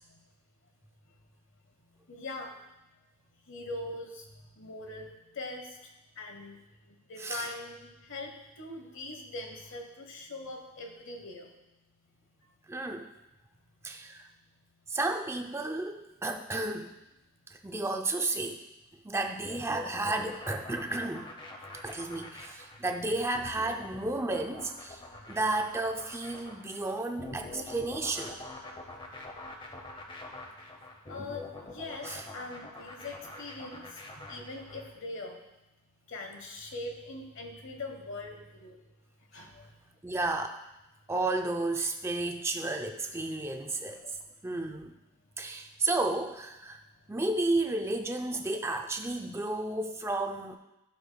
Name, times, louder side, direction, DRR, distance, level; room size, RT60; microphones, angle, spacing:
voice 1, 2.1-2.6 3.5-4.3 4.6-5.9 6.2-6.6 6.8-11.5 25.2-25.3 30.6-30.7 31.1-35.3 36.1-38.8 39.3-39.7 44.0-44.1, left 2 dB, 60° left, 4 dB, 1.1 m, -42 dB
voice 2, 7.2-7.5 12.7-13.1 13.8-14.3 14.9-16.9 17.6-18.6 19.0-21.3 21.8-25.0 25.3-28.4 32.0-32.2 40.0-40.6 41.1-44.0 44.4-44.9 45.4-46.8 47.1-50.6, right 2 dB, 10° right, 4 dB, 0.4 m, -32 dB
sound 1, 19.4-34.9, left 2 dB, 25° left, 0.8 m, -45 dB
12.0 x 6.5 x 2.3 m, 0.96 s
head